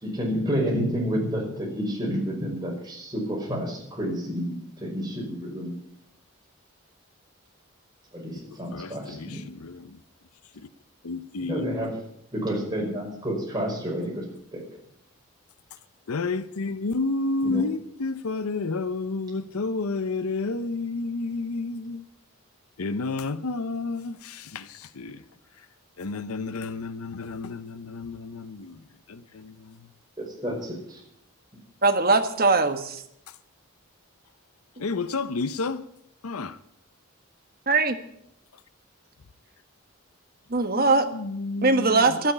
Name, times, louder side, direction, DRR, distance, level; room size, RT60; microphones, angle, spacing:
voice 1, 0.0-5.7 8.1-9.4 11.4-11.9 12.3-14.3 14.5-14.6 17.4-17.6 30.2-31.0, equal, 20° right, 5.4 m, -30 dB
voice 2, 8.7-10.0 10.5-10.7 11.0-11.9 16.1-22.1 22.8-25.2 25.6-25.7 26.0-29.9 33.3-33.4 34.8-35.8 36.2-36.6 40.8-42.2, left 3 dB, 90° left, 0.7 m, -31 dB
voice 3, 31.8-33.0 37.7-38.0 40.5-41.1 41.6-42.3, right 3 dB, 45° right, 1.3 m, -21 dB
12.0 x 9.1 x 10.0 m
head